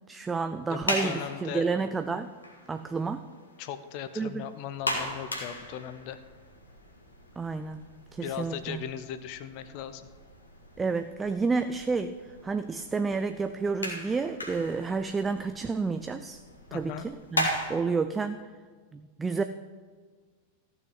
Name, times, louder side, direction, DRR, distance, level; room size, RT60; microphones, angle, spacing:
voice 1, 0.1-2.3 2.7-3.3 4.2-4.5 7.4-7.8 8.1-8.8 10.8-16.4 16.7-18.4 18.9-19.4, right 4 dB, 15° right, 9 dB, 0.5 m, -30 dB
sound 1, 0.6-17.7, left 1 dB, 75° left, 2.2 m, -38 dB
voice 2, 0.7-1.7 3.6-6.2 8.2-10.0 16.7-17.1, left 9 dB, 45° left, 12 dB, 0.7 m, -38 dB
14.5 x 6.4 x 7.5 m, 1.5 s
figure-of-eight pair, 90°, 0 cm